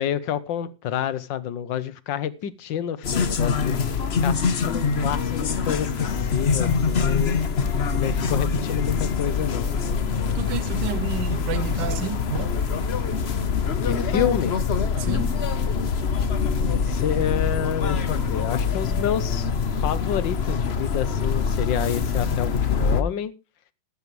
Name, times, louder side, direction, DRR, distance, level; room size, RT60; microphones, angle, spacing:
voice 1, 0.0-3.8 4.2-7.4 7.9-9.7 13.8-14.5 16.8-19.5 19.8-23.3, left 9 dB, 85° left, 1.7 m, -28 dB
sound 1, 3.0-23.0, left 5 dB, 40° left, 1.0 m, -24 dB
voice 2, 10.3-12.6 15.0-15.6, right 9 dB, 75° right, 1.5 m, -31 dB
14.5 x 12.0 x 3.2 m
omnidirectional pair, 2.0 m